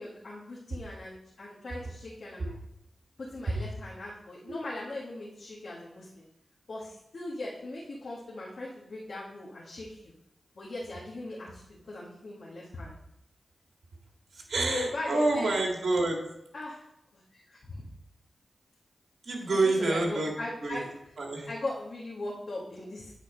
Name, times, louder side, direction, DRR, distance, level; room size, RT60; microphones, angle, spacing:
voice 1, 0.0-2.5 3.2-6.2 6.7-10.1 10.5-12.9 14.6-15.5 16.5-16.8 17.3-17.8 19.5-20.8 21.5-23.1, left 2 dB, 65° left, -5 dB, 1.6 m, -39 dB
voice 2, 14.3-16.2 19.2-20.3 20.6-20.8 21.2-21.5, right 2 dB, 70° right, 1 dB, 1.9 m, -28 dB
8.6 x 4.1 x 5.2 m, 0.80 s
cardioid pair, 50°, 0 cm